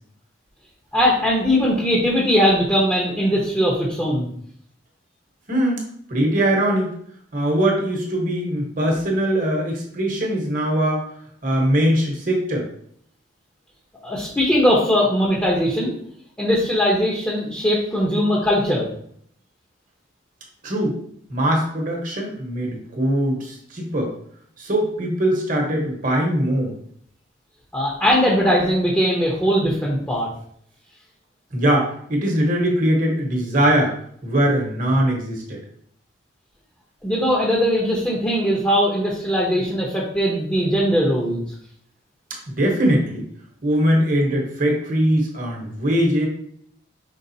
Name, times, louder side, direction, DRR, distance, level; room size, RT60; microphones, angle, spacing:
voice 1, 0.9-4.3 14.0-15.9 16.4-18.9 27.7-30.3 37.0-41.4, equal, 10° left, -5 dB, 0.8 m, -20 dB
voice 2, 5.5-5.8 6.1-6.9 7.3-11.1 11.4-12.7 20.6-21.0 21.3-24.1 24.6-26.7 31.5-33.9 34.2-35.6 42.5-43.2 43.6-46.3, right 1 dB, 40° right, 0 dB, 1.1 m, -21 dB
5.3 x 3.7 x 2.7 m, 0.64 s
head